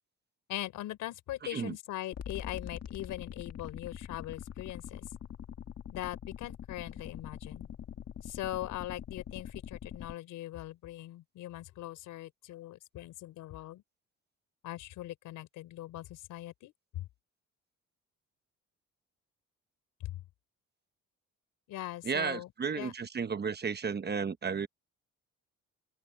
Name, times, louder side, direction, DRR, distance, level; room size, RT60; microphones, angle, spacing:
voice 1, 0.5-5.0 5.9-7.7 8.2-13.8 14.6-17.0 21.7-22.5 22.8-22.9, left 15 dB, 90° left, 4.0 m, -41 dB
voice 2, 1.4-1.8 22.0-24.7, right 6 dB, 35° right, 1.1 m, -33 dB
sound 1, 2.1-10.1, left 9 dB, 55° left, 1.7 m, -44 dB
cardioid pair, 90°, 30 cm